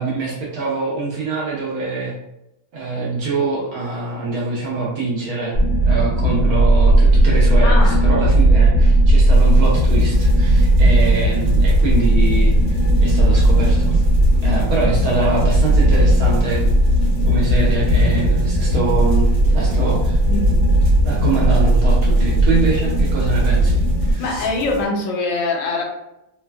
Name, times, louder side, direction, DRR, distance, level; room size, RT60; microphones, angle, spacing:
voice 1, 0.0-2.1 2.7-12.6 13.0-14.0 14.4-16.7 17.2-20.2 21.0-24.5, right 3 dB, 70° right, -4 dB, 0.9 m, -24 dB
sound 1, 5.5-24.1, right 1 dB, 35° right, 1.0 m, -15 dB
voice 2, 7.6-8.0 20.3-20.6 24.2-25.8, left 3 dB, 85° left, 0 dB, 1.4 m, -23 dB
sound 2, 9.3-24.9, left 1 dB, 50° right, 0.5 m, -33 dB
3.2 x 2.1 x 2.2 m, 0.88 s
omnidirectional pair, 2.0 m